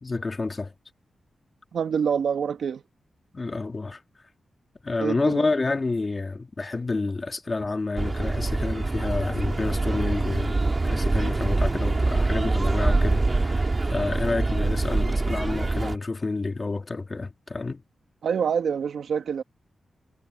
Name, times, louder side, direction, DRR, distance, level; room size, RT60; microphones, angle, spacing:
voice 1, 0.0-0.7 3.3-4.0 4.8-17.8, left 3 dB, 25° left, 1.8 m, -29 dB
voice 2, 1.7-2.8 5.0-5.5 18.2-19.4, right 7 dB, 80° right, 1.7 m, -26 dB
sound 1, 8.0-16.0, right 3 dB, 25° right, 2.4 m, -24 dB
wide cardioid pair, 170°, 0 cm